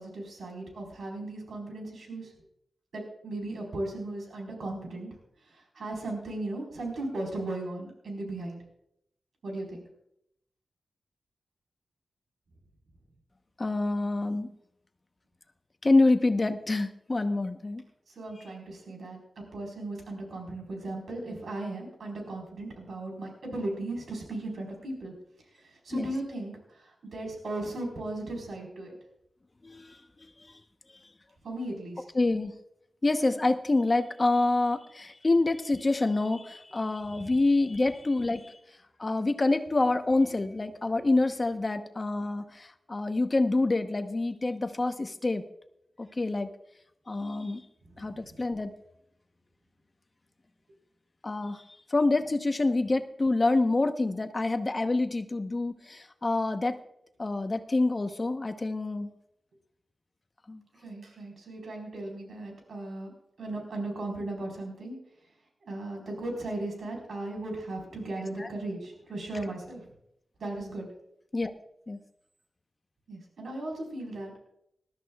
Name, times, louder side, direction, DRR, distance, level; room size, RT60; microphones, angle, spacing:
voice 1, 0.0-2.3 2.9-5.1 5.5-8.6 9.4-9.8 18.1-19.2 19.5-25.1 25.6-28.9 31.4-32.0 37.1-37.2 47.9-48.3 60.8-63.1 63.4-65.0 65.7-69.8 70.4-70.9 73.1-74.4, right 2 dB, 85° right, 0 dB, 4.3 m, -37 dB
voice 2, 13.6-14.5 15.8-17.8 25.9-26.1 29.6-30.0 30.4-30.5 32.1-32.5 33.0-38.6 39.0-45.4 46.0-46.5 47.1-47.6 48.0-48.7 51.2-51.6 51.9-56.8 57.2-59.1 60.5-60.6 68.4-68.5 71.3-71.5 71.9-72.0, left 2 dB, 35° left, 8 dB, 0.9 m, -27 dB
20.0 x 13.0 x 2.4 m, 0.77 s
wide cardioid pair, 70°, 0 cm